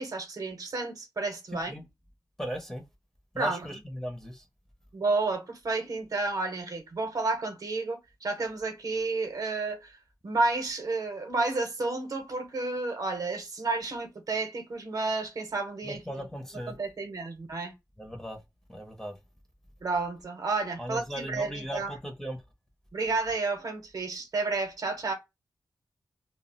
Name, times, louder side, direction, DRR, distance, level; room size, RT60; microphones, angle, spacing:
voice 1, 0.0-1.7 3.4-3.7 4.9-10.0 10.2-16.3 16.7-17.7 19.8-22.0 22.9-25.1, right 3 dB, 60° right, 0.7 m, -31 dB
voice 2, 2.4-2.8 3.3-4.4 15.8-16.7 18.0-18.4 18.7-19.2 20.8-22.4, equal, 5° left, 0.6 m, -37 dB
2.3 x 2.0 x 3.7 m
wide cardioid pair, 140°, 7 cm